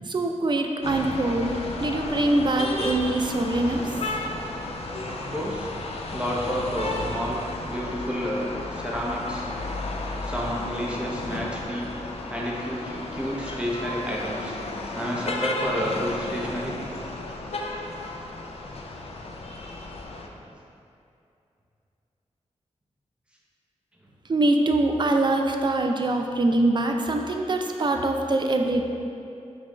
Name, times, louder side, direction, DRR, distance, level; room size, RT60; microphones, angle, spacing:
voice 1, 0.1-3.9 24.3-28.8, right 2 dB, 40° right, 3 dB, 0.4 m, -23 dB
sound 1, 0.8-20.3, left 2 dB, 55° left, 0.4 m, -33 dB
voice 2, 4.2-4.7 5.0-5.7 6.1-9.5 10.2-11.9 12.3-14.6 14.9-16.8 20.3-20.4, equal, 10° right, -4 dB, 0.8 m, -30 dB
5.5 x 2.5 x 3.1 m, 2.6 s
cardioid pair, 60°, 12 cm